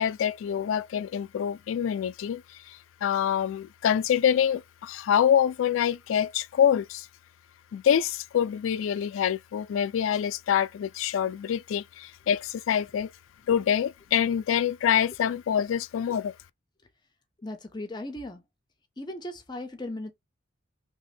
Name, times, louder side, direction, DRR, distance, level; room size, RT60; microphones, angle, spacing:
voice 1, 0.0-2.4 2.7-7.1 7.7-13.1 13.5-16.3, left 9 dB, 90° left, 0.3 m, -26 dB
voice 2, 17.4-18.4 19.0-20.1, left 1 dB, 20° left, 0.5 m, -37 dB
2.8 x 2.6 x 3.1 m
head